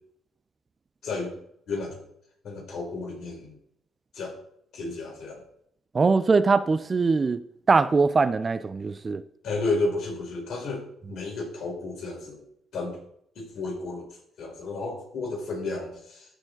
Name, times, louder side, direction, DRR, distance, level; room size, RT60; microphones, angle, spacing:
voice 1, 1.0-1.3 1.7-2.0 2.4-3.5 4.1-4.4 4.7-5.4 9.4-12.4 12.7-13.0 13.4-14.1 14.4-16.3, left 3 dB, 70° left, 4.3 m, -32 dB
voice 2, 5.9-7.4 7.7-9.2, right 4 dB, 35° right, 0.5 m, -22 dB
14.0 x 5.0 x 3.9 m
cardioid pair, 90°, 0 cm